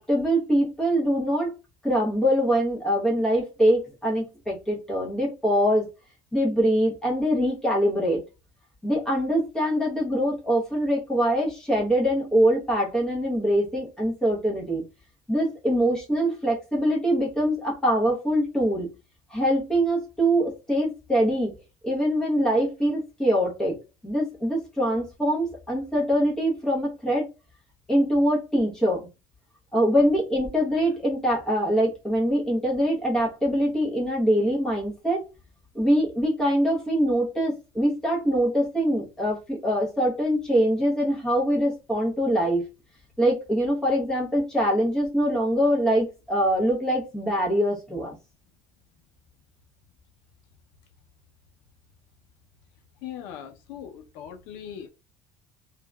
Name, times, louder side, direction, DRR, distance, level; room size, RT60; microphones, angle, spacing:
voice 1, 0.0-1.5 1.8-5.9 6.3-8.2 8.8-14.8 15.3-18.9 19.3-21.5 21.8-23.8 24.0-27.3 27.9-29.1 29.7-35.3 35.7-42.7 43.2-48.2, equal, 5° left, 0.9 m, -23 dB
voice 2, 53.0-54.9, left 9 dB, 80° left, 0.6 m, -39 dB
2.8 x 2.4 x 2.2 m
cardioid pair, 165°, 10 cm